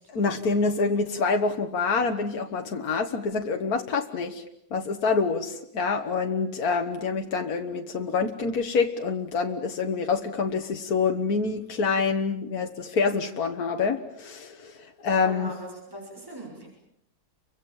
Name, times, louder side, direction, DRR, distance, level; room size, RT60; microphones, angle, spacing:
voice 1, 0.1-4.4 4.7-15.5, left 4 dB, 70° left, 4 dB, 2.0 m, -26 dB
voice 2, 15.2-16.7, right 1 dB, 15° right, 0 dB, 6.8 m, -39 dB
30.0 x 25.0 x 7.3 m, 0.74 s
omnidirectional pair, 1.6 m